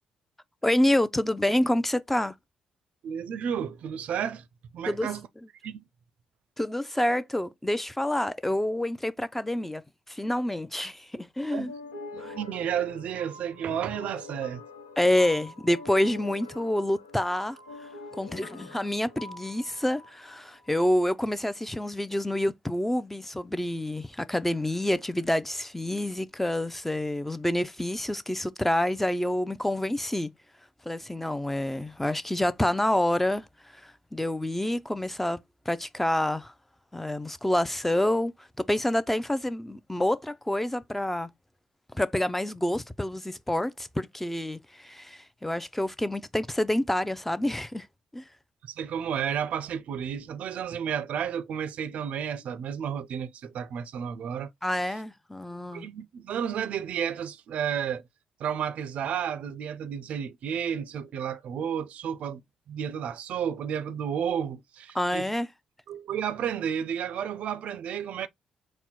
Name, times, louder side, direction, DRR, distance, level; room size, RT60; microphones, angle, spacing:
voice 1, 0.6-2.3 4.9-5.1 6.6-9.8 10.1-11.7 12.2-12.3 15.0-17.6 18.1-30.3 30.9-33.4 33.7-35.4 35.7-36.5 36.9-41.3 41.9-47.9 48.1-48.2 54.6-55.9 64.9-65.5, left 1 dB, 10° left, 0.5 m, -27 dB
voice 2, 3.0-4.4 4.7-5.3 5.6-5.8 11.5-11.7 12.1-14.6 48.7-54.5 55.7-58.0 58.4-62.4 62.7-65.2 65.9-68.3, right 8 dB, 65° right, 0.4 m, -32 dB
sound 1, 11.7-20.9, left 3 dB, 90° left, 0.8 m, -44 dB
4.3 x 2.1 x 4.1 m
hypercardioid pair, 45°, 2 cm